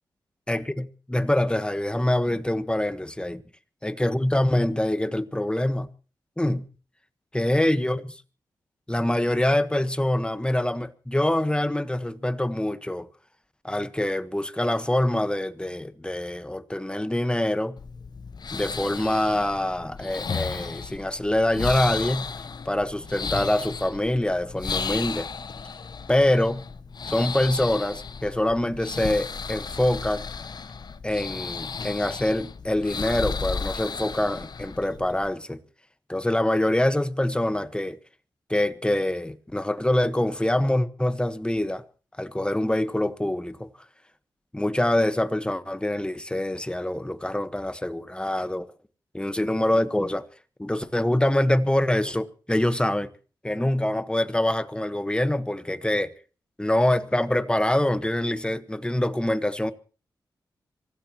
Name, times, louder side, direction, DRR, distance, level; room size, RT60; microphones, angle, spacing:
voice 1, 0.5-3.4 3.8-5.9 6.4-6.7 7.3-8.2 8.9-13.1 13.6-17.8 18.5-22.3 22.6-25.3 26.1-26.6 27.1-30.3 31.0-35.6 36.1-38.0 38.5-41.8 42.2-43.7 44.5-48.7 49.1-50.3 50.6-53.1 53.4-56.1 56.6-59.7, left 1 dB, 10° left, 1.3 m, -25 dB
sound 1, 17.8-35.3, left 5 dB, 60° left, 0.9 m, -34 dB
25.5 x 16.0 x 3.0 m
cardioid pair, 45°, 8 cm